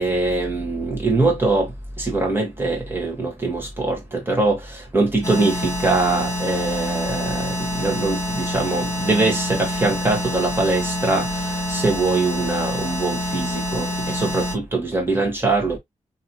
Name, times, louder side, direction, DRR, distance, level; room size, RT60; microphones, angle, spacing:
voice 1, 0.0-1.7 2.0-15.8, right 3 dB, 15° right, 1.4 m, -23 dB
sound 1, 5.2-14.6, equal, 20° left, 2.0 m, -26 dB
3.2 x 2.8 x 2.7 m
wide cardioid pair, 175°, 13 cm